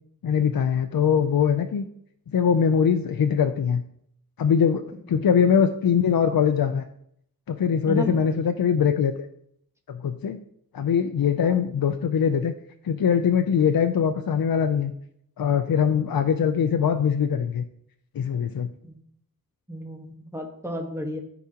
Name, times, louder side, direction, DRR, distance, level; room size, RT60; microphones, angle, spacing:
voice 1, 0.2-1.8 2.3-3.8 4.4-6.9 7.5-9.3 9.9-10.4 10.7-12.5 12.8-14.9 15.4-17.6 18.1-18.7, left 7 dB, 80° left, 7 dB, 0.5 m, -22 dB
voice 2, 5.1-5.7 7.9-8.3 11.4-11.6 15.9-16.1 18.8-19.0 19.7-21.2, left 1 dB, 10° right, 2 dB, 1.3 m, -34 dB
13.5 x 4.8 x 2.9 m, 0.70 s
wide cardioid pair, 75°, 35 cm